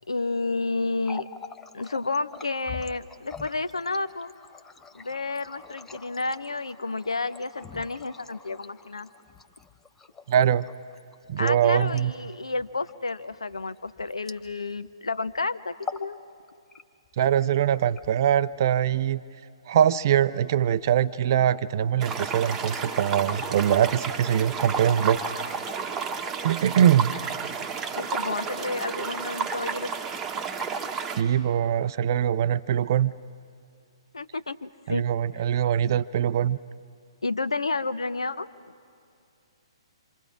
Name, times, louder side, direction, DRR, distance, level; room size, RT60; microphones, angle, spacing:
voice 1, 0.1-1.3 1.7-4.3 4.9-9.1 11.4-16.2 27.9-29.9 34.1-35.0 37.2-38.5, left 3 dB, 70° left, 14 dB, 0.7 m, -30 dB
Water tap faucet, 0.9-14.9 15.2-15.4 15.7-16.1 16.5-17.1 17.8-18.6, left 5 dB, 10° left, 0.6 m, -44 dB
voice 2, 10.3-10.7 11.3-12.1 17.2-19.2 19.7-25.3 26.4-27.1 31.2-33.1 34.9-36.6, right 9 dB, 40° right, 16 dB, 0.5 m, -23 dB
sound 1, 22.0-31.2, right 5 dB, 15° right, 1.1 m, -32 dB
27.0 x 25.5 x 4.8 m, 2.5 s
figure-of-eight pair, 125°, 3 cm